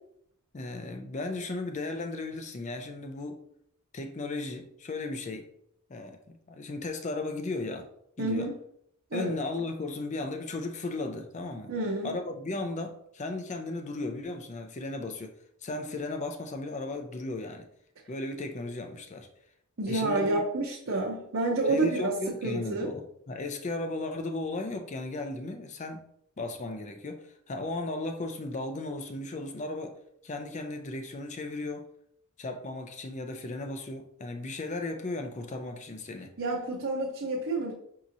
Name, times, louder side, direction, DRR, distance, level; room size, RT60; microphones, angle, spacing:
voice 1, 0.5-3.4 3.9-5.5 5.9-7.9 8.2-8.5 9.1-11.7 12.0-15.3 15.6-17.7 18.1-19.3 19.9-20.4 21.7-26.0 26.4-30.0 30.2-31.9 32.4-36.3, left 2 dB, 35° left, 5 dB, 0.5 m, -35 dB
voice 2, 8.2-8.6 9.1-9.4 11.7-12.2 19.8-22.1 22.4-22.9 36.4-37.7, right 2 dB, 60° right, -4 dB, 0.7 m, -29 dB
5.9 x 2.8 x 2.6 m, 0.71 s
head